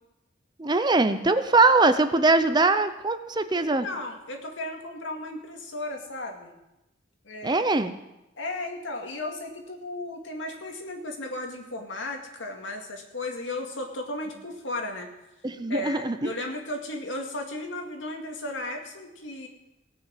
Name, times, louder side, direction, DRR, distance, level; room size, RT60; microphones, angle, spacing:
voice 1, 0.6-3.9 7.4-7.9 15.4-16.3, right 3 dB, 20° right, 10 dB, 0.6 m, -22 dB
voice 2, 3.5-6.6 7.2-7.7 8.4-15.1 15.7-19.5, left 2 dB, 85° left, 2 dB, 2.2 m, -35 dB
17.5 x 6.5 x 7.6 m, 0.94 s
head